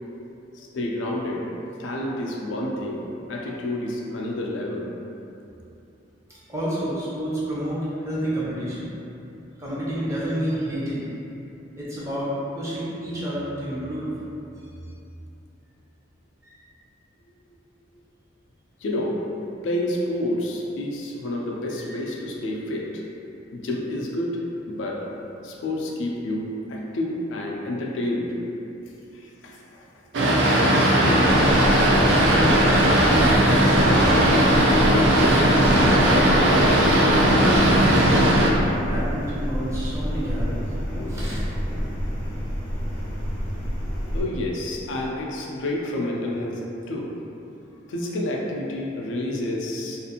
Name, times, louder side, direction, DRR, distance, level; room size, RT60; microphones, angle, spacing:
voice 1, 0.5-1.5 1.8-4.9 18.8-19.2 19.6-23.0 23.5-24.4 24.7-25.0 25.4-28.3 29.1-29.9 44.1-46.6 46.9-47.1 47.9-50.0, left 1 dB, 80° left, -2 dB, 0.4 m, -29 dB
voice 2, 6.5-8.9 9.6-11.1 11.8-14.1 16.4-16.6 21.8-21.9 32.2-34.3 34.7-36.8 37.4-40.7 41.1-41.4, equal, 15° right, -9 dB, 0.6 m, -29 dB
Boat Water vehicle, 30.1-38.5, right 1 dB, 70° right, 0.4 m, -18 dB
sound 1, 31.3-44.2, equal, 45° right, 1.1 m, -29 dB
2.4 x 2.4 x 2.8 m, 2.8 s
head